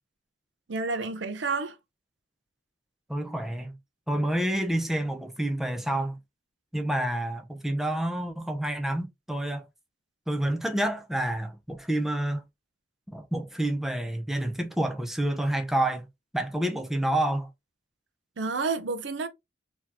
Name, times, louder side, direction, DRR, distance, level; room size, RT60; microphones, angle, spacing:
voice 1, 0.7-1.8 18.4-19.3, right 4 dB, 80° right, 0.7 m, -30 dB
voice 2, 3.1-3.7 4.1-6.2 6.7-9.6 10.3-12.4 13.1-16.1 16.3-17.5, right 1 dB, ahead, 0.6 m, -28 dB
3.9 x 2.9 x 2.8 m
head